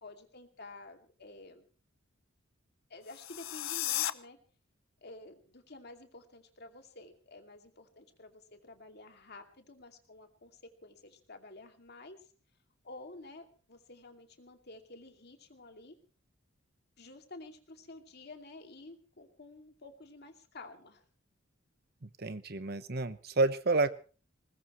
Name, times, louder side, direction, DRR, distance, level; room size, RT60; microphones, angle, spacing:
voice 1, 0.0-1.7 2.9-4.4 5.0-12.2 12.8-15.9 17.0-21.0, left 2 dB, 55° left, 5 dB, 2.5 m, -51 dB
sound 1, 3.0-4.1, left 13 dB, 80° left, 0.8 m, -34 dB
voice 2, 22.0-23.9, right 3 dB, 50° right, 12 dB, 1.1 m, -30 dB
21.0 x 20.0 x 3.2 m, 0.38 s
head